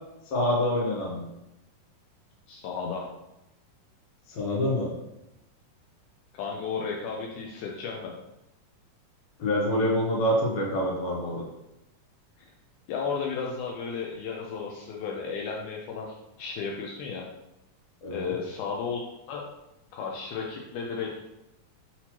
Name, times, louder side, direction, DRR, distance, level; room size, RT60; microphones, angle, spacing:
voice 1, 0.3-1.3 4.3-4.9 9.4-11.5 18.0-18.3, equal, 75° left, -3 dB, 1.8 m, -26 dB
voice 2, 2.5-3.1 6.3-8.1 12.9-17.2 18.1-19.0 19.3-19.4 19.9-21.1, left 5 dB, 90° left, -1 dB, 1.7 m, -33 dB
5.9 x 2.9 x 2.9 m, 0.90 s
omnidirectional pair, 4.0 m